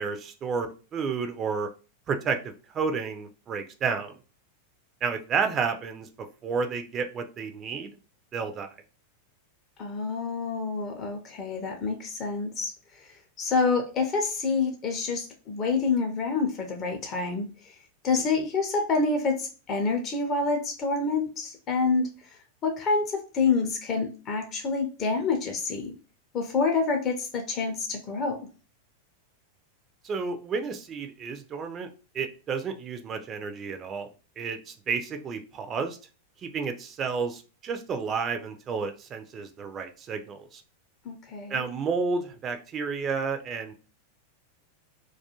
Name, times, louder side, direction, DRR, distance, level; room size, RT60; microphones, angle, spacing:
voice 1, 0.0-1.7 2.1-4.1 5.0-6.1 6.4-8.0 8.3-8.7 30.0-31.9 32.1-34.1 34.4-36.0 36.4-40.6 41.5-43.7, right 5 dB, 25° right, 7 dB, 0.3 m, -31 dB
voice 2, 9.8-17.8 18.0-25.9 26.3-28.5 41.0-41.6, left 4 dB, 35° left, 4 dB, 0.5 m, -28 dB
2.3 x 2.2 x 2.8 m, 0.35 s
figure-of-eight pair, 90°, 0 cm